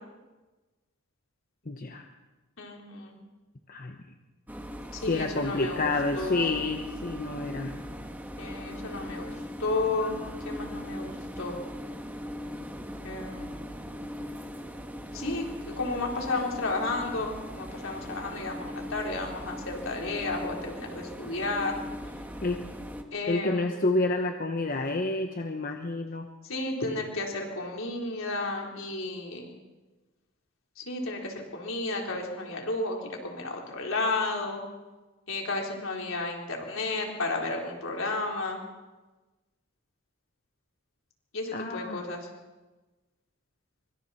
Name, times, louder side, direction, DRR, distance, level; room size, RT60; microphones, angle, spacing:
voice 1, 1.7-2.0 3.7-4.0 5.1-7.7 22.4-22.6 23.3-26.3 41.5-42.0, left 2 dB, 40° left, 4 dB, 1.1 m, -29 dB
voice 2, 2.6-3.2 4.9-6.5 8.4-9.3 9.6-10.2 10.4-11.6 13.0-13.5 15.1-21.7 23.1-23.6 26.4-29.5 30.8-33.0 33.2-34.6 35.3-38.6 41.3-42.3, left 2 dB, 70° left, 0 dB, 3.9 m, -32 dB
sound 1, 4.5-23.0, equal, 10° right, 1.5 m, -39 dB
24.5 x 24.5 x 4.3 m, 1.2 s
head